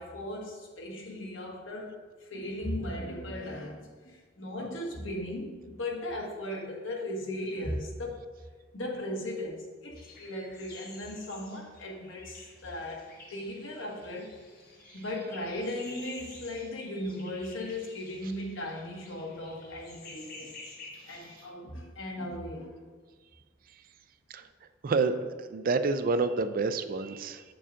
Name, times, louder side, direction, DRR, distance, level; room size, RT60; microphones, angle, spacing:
voice 1, 0.0-8.2 8.7-14.4 14.9-20.5 21.0-22.8, left 1 dB, 85° left, -1 dB, 1.4 m, -37 dB
sound 1, 9.9-21.5, left 3 dB, 50° left, 1.3 m, -50 dB
voice 2, 24.8-27.4, right 4 dB, 45° right, 10 dB, 0.4 m, -28 dB
8.7 x 6.8 x 2.5 m, 1.5 s
head